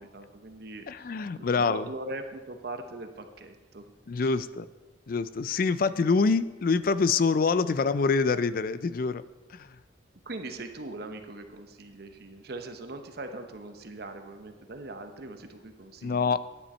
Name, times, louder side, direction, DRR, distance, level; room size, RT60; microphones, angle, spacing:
voice 1, 0.0-1.1 1.4-3.9 10.3-16.4, right 2 dB, 55° right, 6 dB, 0.9 m, -41 dB
voice 2, 0.9-1.9 4.1-4.7 5.1-9.2 9.5-9.8 16.0-16.4, left 4 dB, 50° left, 15 dB, 0.4 m, -26 dB
10.5 x 10.0 x 4.3 m, 1.2 s
head